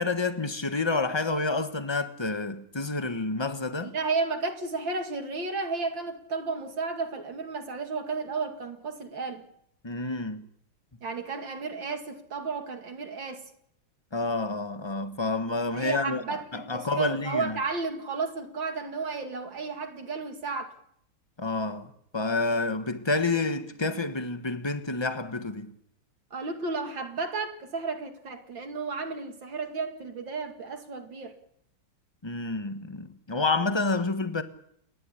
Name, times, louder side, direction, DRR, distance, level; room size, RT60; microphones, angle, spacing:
voice 1, 0.0-3.9 9.8-10.4 14.1-16.2 16.5-17.6 21.4-25.7 32.2-34.4, left 3 dB, 15° left, 1.0 m, -29 dB
voice 2, 3.8-9.4 11.0-13.5 15.7-20.7 26.3-31.4, right 4 dB, 60° right, 2.9 m, -33 dB
29.5 x 12.0 x 9.9 m
omnidirectional pair, 2.3 m